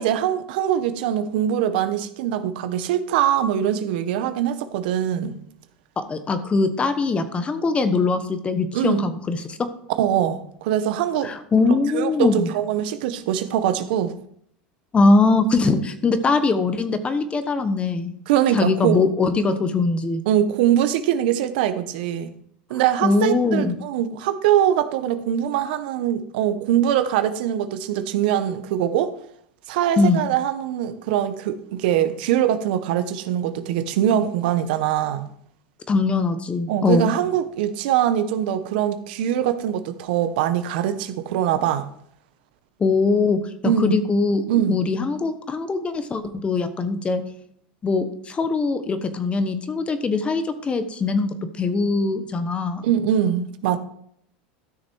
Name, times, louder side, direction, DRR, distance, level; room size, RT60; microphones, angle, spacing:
voice 1, 0.0-5.4 8.7-9.1 9.9-11.3 11.9-14.1 18.3-19.0 20.3-22.3 22.7-29.1 29.7-35.3 36.7-41.9 43.6-44.0 44.5-44.7 52.8-53.8, right 10 dB, 75° right, 1.0 m, -22 dB
voice 2, 6.0-9.6 11.2-12.5 14.9-18.1 18.5-20.2 23.0-23.7 30.0-30.2 35.9-37.1 42.8-47.2 47.8-52.9, left 3 dB, 20° left, 1.1 m, -22 dB
13.0 x 6.3 x 4.6 m
supercardioid pair, 125°, 5 cm